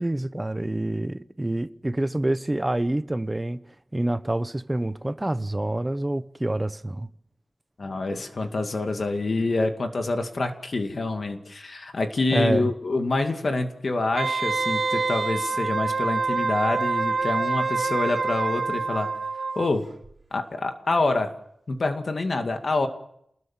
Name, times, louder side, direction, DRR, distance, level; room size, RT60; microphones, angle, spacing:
voice 1, 0.0-3.6 3.9-7.1 12.3-12.7, right 1 dB, 15° right, 0.9 m, -27 dB
voice 2, 7.8-19.1 19.6-19.9 20.3-21.3 21.7-22.9, left 2 dB, 50° left, 2.3 m, -26 dB
Wind instrument woodwind instrument, 14.2-19.7 20.0-20.1, right 4 dB, 50° right, 3.3 m, -26 dB
28.0 x 20.5 x 7.4 m
wide cardioid pair, 115°, 0 cm